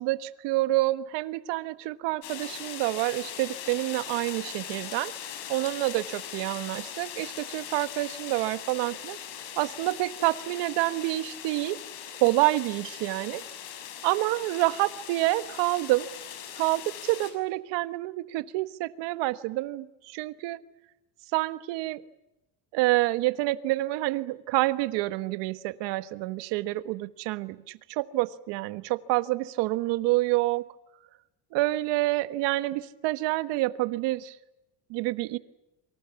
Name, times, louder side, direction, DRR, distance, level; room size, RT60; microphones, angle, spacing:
voice 1, 0.0-5.1 5.5-9.2 9.6-11.8 12.2-13.4 14.0-16.1 16.6-20.6 21.3-22.0 22.7-30.6 31.5-34.4 34.9-35.4, right 18 dB, 80° right, 13 dB, 1.5 m, -28 dB
sound 1, 2.2-17.3, left 10 dB, 70° left, 6.5 m, -40 dB
27.5 x 25.5 x 7.1 m, 0.94 s
cardioid pair, 150°, 43 cm